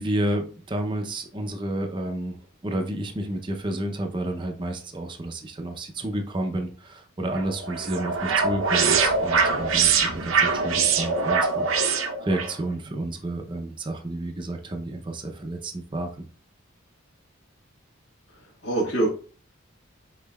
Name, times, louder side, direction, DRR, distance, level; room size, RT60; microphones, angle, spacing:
voice 1, 0.0-2.4 2.6-11.7 12.2-16.3, right 1 dB, 25° right, 3 dB, 0.5 m, -30 dB
sound 1, 7.3-12.5, right 5 dB, 75° right, 0.6 m, -23 dB
voice 2, 18.3-19.1, right 2 dB, 65° left, -7 dB, 1.4 m, -25 dB
5.3 x 3.8 x 2.2 m, 0.40 s
head